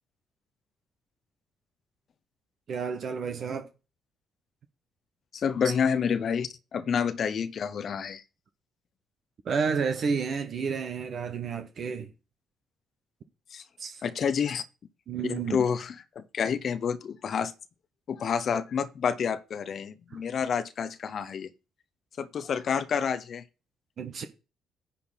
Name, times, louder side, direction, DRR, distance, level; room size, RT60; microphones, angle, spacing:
voice 1, 2.7-3.7 9.4-12.1 13.8-14.0 15.1-15.7 20.1-20.2 24.0-24.2, right 5 dB, 55° right, 1.2 m, -31 dB
voice 2, 5.3-8.2 13.5-13.6 14.0-14.6 15.2-17.5 18.1-21.5 22.2-23.4, left 7 dB, 50° left, 0.9 m, -29 dB
10.0 x 4.2 x 5.7 m
hypercardioid pair, 45°, 0 cm